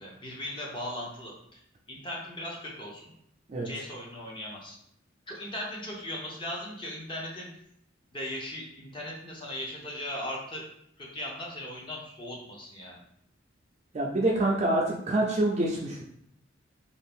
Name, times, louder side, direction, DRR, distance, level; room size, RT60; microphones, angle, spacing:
voice 1, 0.0-1.6 1.9-3.1 3.6-4.8 5.3-7.5 8.1-10.6 11.0-13.0, left 1 dB, 25° left, -3 dB, 0.6 m, -38 dB
voice 2, 13.9-16.0, right 1 dB, 35° right, -3 dB, 0.4 m, -26 dB
2.6 x 2.4 x 3.5 m, 0.72 s
head